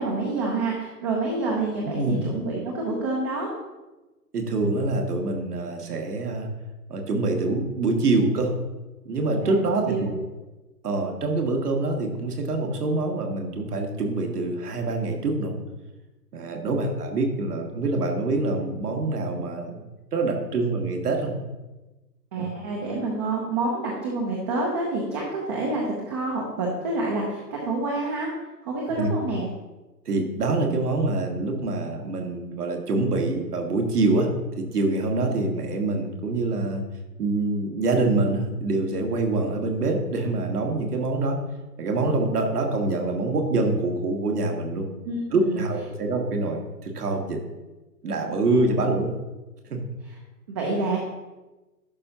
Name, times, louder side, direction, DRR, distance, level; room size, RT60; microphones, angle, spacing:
voice 1, 0.0-3.5 9.4-9.5 9.8-10.1 22.3-28.3 28.6-29.5 45.0-45.6 48.6-48.8 50.5-51.0, right 2 dB, 15° right, -2 dB, 0.6 m, -28 dB
voice 2, 1.9-2.3 4.3-6.5 6.9-8.5 9.0-10.1 10.8-15.6 16.3-19.7 20.1-21.3 22.4-22.5 29.0-29.1 30.0-34.3 34.6-36.8 37.2-41.4 41.8-44.9 45.3-47.4 48.0-49.1 49.7-49.8, right 2 dB, 65° right, 3 dB, 1.6 m, -25 dB
11.0 x 5.3 x 2.8 m, 1.1 s
figure-of-eight pair, 135°, 50 cm